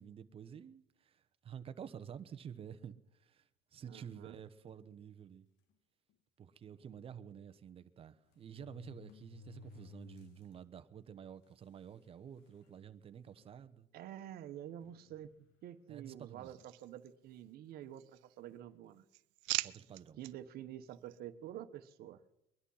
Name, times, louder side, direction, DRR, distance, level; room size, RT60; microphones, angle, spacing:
voice 1, 0.0-5.5 6.4-13.9 15.9-16.6 19.6-20.2, right 8 dB, 30° right, 1.0 m, -50 dB
voice 2, 3.9-4.4 13.9-15.3 15.6-19.0 20.2-22.2, right 11 dB, 55° right, 1.3 m, -48 dB
sound 1, 4.7-4.9 5.7-5.8 6.1-6.2 7.5-7.6 8.3-10.5 11.0-11.1 11.9-12.0 12.4-12.8 13.4-13.5 14.8-15.6 16.6-16.9, left 7 dB, 70° left, 2.1 m, -58 dB
sound 2, 16.4-17.5 17.9-18.6 18.9-20.3 20.9-21.2, right 23 dB, 85° right, 0.6 m, -42 dB
21.5 x 11.5 x 5.7 m
cardioid pair, 150°, 19 cm